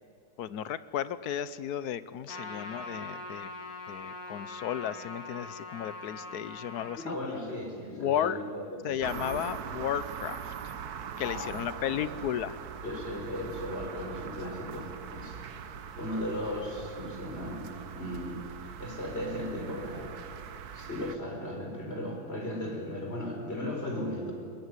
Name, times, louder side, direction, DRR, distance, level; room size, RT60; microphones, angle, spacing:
voice 1, 0.4-3.5 3.9-7.1 7.9-8.4 8.8-10.5 11.2-12.6, left 10 dB, 85° left, 15 dB, 1.3 m, -34 dB
Trumpet, 2.3-7.0, left 3 dB, 70° left, 3.1 m, -42 dB
voice 2, 7.0-9.5 11.2-12.1 12.8-20.1 20.7-24.3, left 1 dB, 40° left, 1 dB, 4.9 m, -37 dB
sound 1, 9.0-21.2, right 7 dB, 80° right, 1.6 m, -42 dB
22.5 x 21.0 x 9.8 m, 2.3 s
omnidirectional pair, 1.6 m